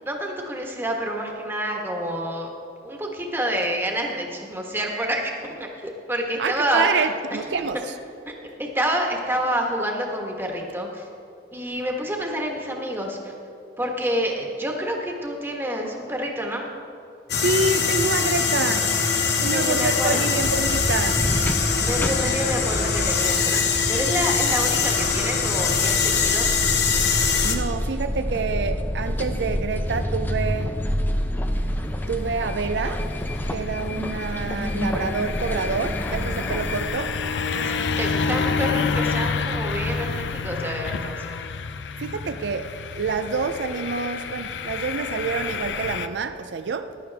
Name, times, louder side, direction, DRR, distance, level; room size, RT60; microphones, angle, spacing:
voice 1, 0.0-2.5 2.8-7.4 7.7-7.8 8.2-8.3 8.6-11.1 11.5-13.3 13.8-16.7 19.4-20.3 21.8-23.6 23.9-26.5 37.5-41.4, equal, 15° right, 1 dB, 1.4 m, -28 dB
voice 2, 6.4-7.8 17.4-19.0 19.4-21.2 27.4-30.8 32.1-33.0 33.5-37.1 38.6-38.7 42.0-47.0, right 4 dB, 75° right, 9 dB, 0.5 m, -27 dB
sound 1, 17.3-27.6, left 5 dB, 65° left, 1.1 m, -22 dB
sound 2, 20.4-36.9, equal, 10° left, 0.6 m, -29 dB
sound 3, 29.6-46.1, left 5 dB, 85° left, 0.5 m, -30 dB
15.0 x 11.0 x 3.5 m, 2.6 s
head